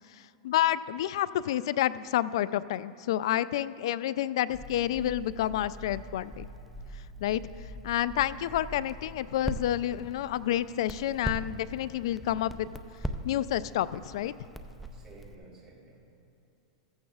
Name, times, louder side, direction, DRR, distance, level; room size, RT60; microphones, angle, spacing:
voice 1, 0.1-6.5 7.2-7.4 7.8-12.7 13.2-14.3, left 12 dB, 70° left, 17 dB, 0.3 m, -29 dB
Crackle, 4.5-15.3, equal, ahead, 0.5 m, -41 dB
voice 2, 14.9-16.2, right 3 dB, 25° right, -4 dB, 3.0 m, -53 dB
15.0 x 14.5 x 2.4 m, 3.0 s
supercardioid pair, 140°, 3 cm